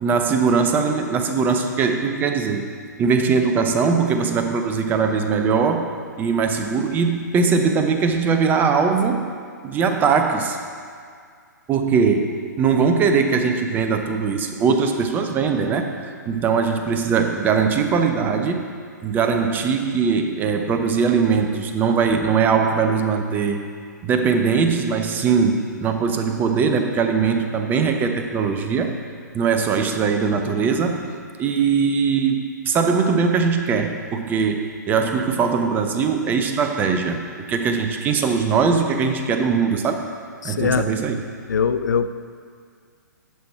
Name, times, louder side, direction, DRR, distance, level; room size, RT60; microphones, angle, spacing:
voice 1, 0.0-2.7 3.0-9.3 9.6-10.6 11.7-15.9 16.3-18.7 19.0-23.6 24.0-28.9 29.3-31.1 31.4-37.2 37.5-40.1 40.4-41.2, right 5 dB, 20° right, 5 dB, 0.6 m, -21 dB
voice 2, 40.4-40.9 41.5-42.1, left 6 dB, 70° left, 12 dB, 0.4 m, -21 dB
10.5 x 5.9 x 4.4 m, 2.1 s
figure-of-eight pair, 120°, 10 cm